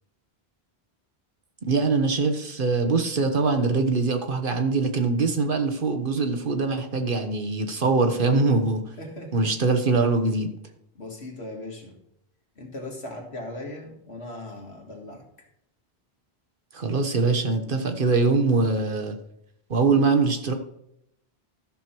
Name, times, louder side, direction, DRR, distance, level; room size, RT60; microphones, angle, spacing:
voice 1, 1.6-8.8 9.3-10.5 16.7-19.2 19.7-20.5, right 4 dB, 55° right, 6 dB, 1.2 m, -23 dB
voice 2, 9.0-9.5 10.9-12.0 12.6-15.3, left 1 dB, 80° left, 1 dB, 2.2 m, -38 dB
13.0 x 6.2 x 4.5 m, 0.78 s
omnidirectional pair, 1.1 m